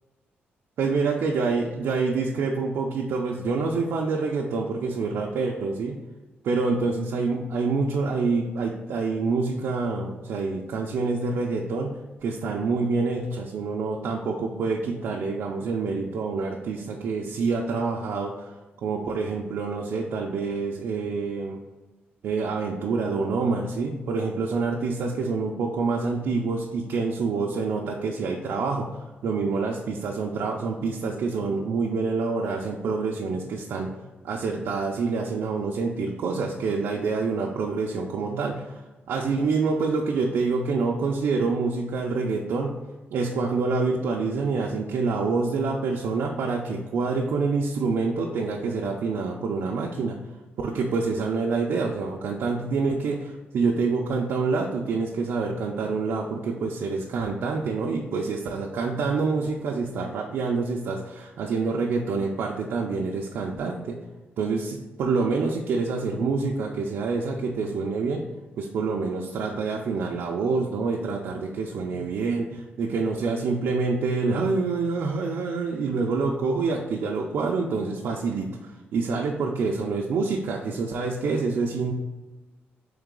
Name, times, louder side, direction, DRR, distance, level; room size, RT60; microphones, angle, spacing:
voice 1, 0.8-5.9 6.4-11.9 12.2-18.5 18.8-21.6 22.2-28.9 29.2-38.8 39.1-42.8 43.1-50.2 50.6-64.0 64.4-68.2 68.6-81.9, right 4 dB, 70° right, -1 dB, 0.4 m, -27 dB
3.9 x 3.2 x 3.7 m, 1.2 s
wide cardioid pair, 150°, 4 cm